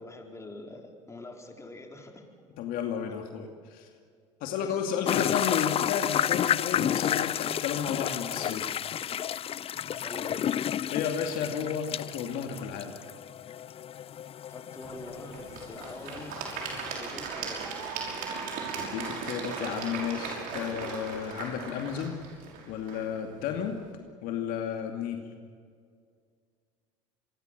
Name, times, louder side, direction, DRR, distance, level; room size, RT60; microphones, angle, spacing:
voice 1, 0.0-2.2 4.6-4.7 5.0-5.2 10.0-10.4 14.5-16.4 16.9-17.6, left 2 dB, 20° left, 3 dB, 4.5 m, -44 dB
voice 2, 2.6-3.9 4.4-8.7 10.9-12.9 18.2-18.3 18.6-22.2 22.7-23.8 24.2-25.3, left 8 dB, 65° left, 4 dB, 2.5 m, -33 dB
sound 1, 5.0-17.0, left 10 dB, 40° left, 0.5 m, -31 dB
Applause / Crowd, 14.8-23.9, right 5 dB, 65° right, 6.0 m, -38 dB
26.5 x 23.0 x 6.8 m, 2.1 s
hypercardioid pair, 75°, 16 cm